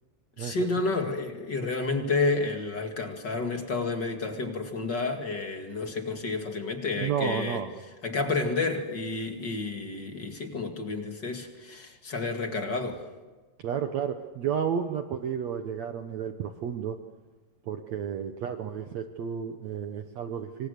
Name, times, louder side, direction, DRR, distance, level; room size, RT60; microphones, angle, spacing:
voice 1, 0.4-7.6 8.0-13.0, left 3 dB, 35° left, 4 dB, 1.9 m, -30 dB
voice 2, 7.0-7.7 13.6-17.0 17.6-20.7, right 8 dB, 80° right, 6 dB, 1.5 m, -32 dB
26.0 x 25.5 x 6.7 m, 1.3 s
omnidirectional pair, 4.8 m